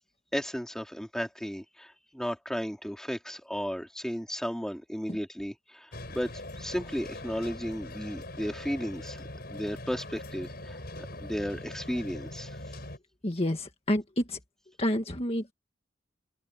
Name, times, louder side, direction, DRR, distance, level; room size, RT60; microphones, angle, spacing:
voice 1, 0.3-12.8, equal, 5° left, 3.0 m, -35 dB
sound 1, 5.9-13.0, left 1 dB, 55° left, 7.2 m, -42 dB
voice 2, 13.2-14.4 14.8-15.5, left 1 dB, 35° left, 1.7 m, -29 dB
open air
head